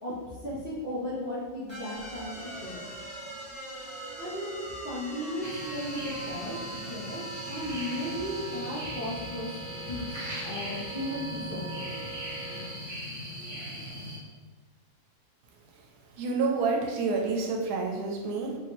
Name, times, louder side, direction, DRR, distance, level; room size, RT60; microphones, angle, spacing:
voice 1, 0.0-2.8 4.2-7.2 7.5-9.6 9.9-12.0, left 1 dB, 55° left, -8 dB, 0.7 m, -36 dB
sound 1, 1.7-12.7, right 2 dB, 25° left, 1.1 m, -41 dB
sound 2, 5.4-14.2, equal, 35° right, 1.0 m, -40 dB
voice 2, 16.2-18.6, right 4 dB, 80° right, 1 dB, 1.1 m, -28 dB
3.2 x 2.9 x 2.8 m, 1.3 s
omnidirectional pair, 1.7 m